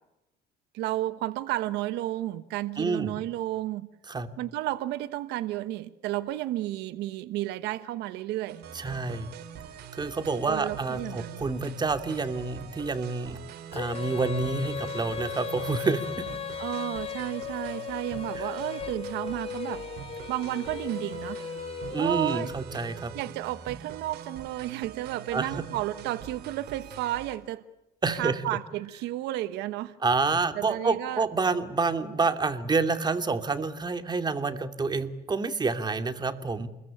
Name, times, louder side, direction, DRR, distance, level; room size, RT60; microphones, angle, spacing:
voice 1, 0.7-3.9 4.4-8.6 10.5-11.4 16.6-19.9 20.3-21.4 22.0-22.5 23.1-27.6 28.1-30.0 30.5-31.2, right 15 dB, 90° right, 13 dB, 1.2 m, -32 dB
voice 2, 2.8-3.2 4.1-4.3 8.7-9.3 9.9-13.4 13.7-16.3 18.4-18.5 21.9-23.1 25.3-25.7 28.0-28.4 30.0-36.7, right 4 dB, 25° right, 8 dB, 2.5 m, -28 dB
sound 1, 8.5-27.4, right 8 dB, 70° right, 3.4 m, -43 dB
Female singing, 13.7-22.9, left 8 dB, 35° left, 1.5 m, -37 dB
29.0 x 22.0 x 8.8 m, 0.88 s
cardioid pair, 110°, 17 cm